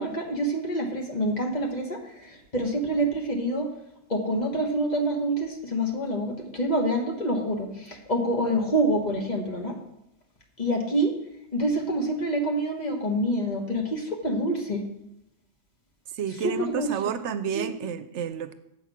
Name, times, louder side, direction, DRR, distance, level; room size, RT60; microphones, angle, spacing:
voice 1, 0.0-3.7 4.1-9.8 10.6-11.2 11.5-14.9 16.3-17.0 17.5-17.7, right 1 dB, 40° left, 1 dB, 1.3 m, -27 dB
voice 2, 16.1-18.5, right 7 dB, 75° right, 11 dB, 0.9 m, -30 dB
7.5 x 5.8 x 6.0 m, 0.83 s
omnidirectional pair, 1.2 m